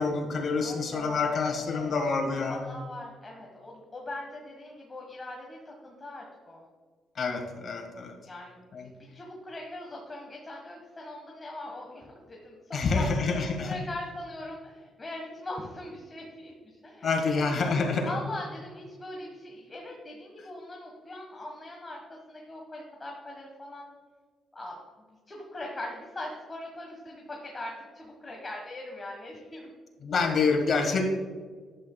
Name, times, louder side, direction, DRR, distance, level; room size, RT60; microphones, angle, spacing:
voice 1, 0.0-2.8 7.1-8.1 8.7-8.9 12.7-13.8 17.0-18.1 30.0-31.0, left 4 dB, 50° left, 3 dB, 1.7 m, -27 dB
voice 2, 0.6-2.1 2.5-6.7 8.2-13.1 13.6-17.5 18.0-24.0 24.5-24.8 25.3-29.7, left 1 dB, 25° left, -1 dB, 1.4 m, -41 dB
11.0 x 8.1 x 2.3 m, 1.5 s
cardioid pair, 90°, 0 cm